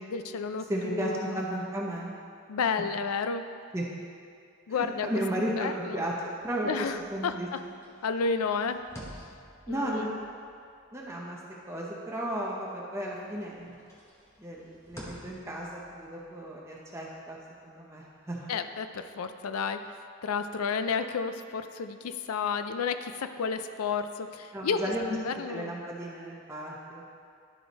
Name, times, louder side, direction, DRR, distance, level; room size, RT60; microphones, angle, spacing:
voice 1, 0.1-1.4 2.5-3.4 4.7-5.1 5.4-6.0 6.6-7.0 7.2-7.6 8.0-8.8 9.7-10.2 18.5-19.9 20.2-24.8 25.1-25.7, left 5 dB, 85° left, 9 dB, 0.4 m, -31 dB
voice 2, 0.7-2.1 3.7-3.9 4.7-7.5 9.7-10.1 10.9-11.4 11.7-13.7 14.4-17.4 17.6-18.5 24.5-25.2 25.5-27.0, right 1 dB, 10° right, -3 dB, 0.7 m, -34 dB
sound 1, 6.4-12.8 13.1-18.5, equal, 10° left, 0.9 m, -52 dB
10.5 x 4.7 x 4.0 m, 2.3 s
head